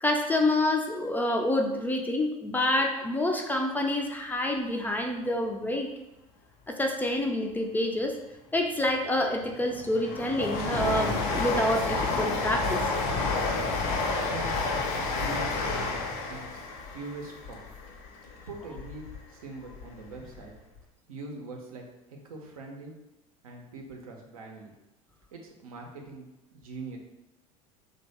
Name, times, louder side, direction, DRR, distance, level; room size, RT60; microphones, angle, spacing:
voice 1, 0.0-5.9 6.7-8.1 8.5-12.8, left 1 dB, 10° left, 2 dB, 0.3 m, -27 dB
Train, 9.0-19.2 19.6-20.5 20.8-20.9, left 3 dB, 55° left, 0.6 m, -30 dB
voice 2, 14.2-17.7 18.5-20.5 21.1-22.9 23.4-24.7 25.3-27.0, right 3 dB, 80° right, 1 dB, 0.6 m, -43 dB
2.8 x 2.0 x 3.2 m, 0.95 s
hypercardioid pair, 75°, 18 cm